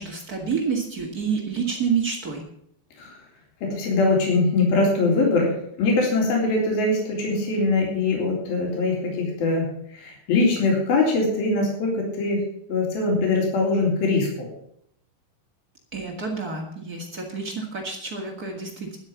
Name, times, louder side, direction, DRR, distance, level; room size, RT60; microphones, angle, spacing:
voice 1, 0.0-2.4 15.9-19.0, right 5 dB, 45° right, 0 dB, 1.2 m, -28 dB
voice 2, 3.6-9.7 9.9-12.4 12.7-14.5, left 3 dB, 55° left, -1 dB, 5.2 m, -22 dB
12.0 x 8.3 x 7.2 m, 0.69 s
omnidirectional pair, 5.3 m